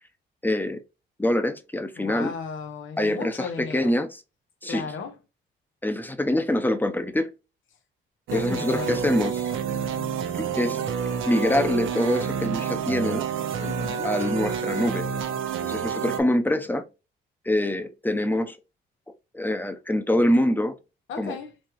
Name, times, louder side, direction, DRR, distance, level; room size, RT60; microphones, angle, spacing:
voice 1, 0.4-0.8 1.2-2.3 3.0-4.2 4.6-4.9 5.8-7.3 8.3-9.5 10.4-10.8 11.2-13.3 14.0-15.1 15.6-16.8 17.4-18.6 19.3-20.7 21.2-21.4, left 1 dB, 10° left, 0.8 m, -25 dB
voice 2, 2.0-3.9 4.7-5.2 8.3-9.0 13.6-14.1 21.1-21.5, left 5 dB, 80° left, 1.1 m, -35 dB
sound 1, 8.3-16.2, right 7 dB, 80° right, 1.0 m, -28 dB
4.2 x 3.2 x 3.1 m
cardioid pair, 90°, 20 cm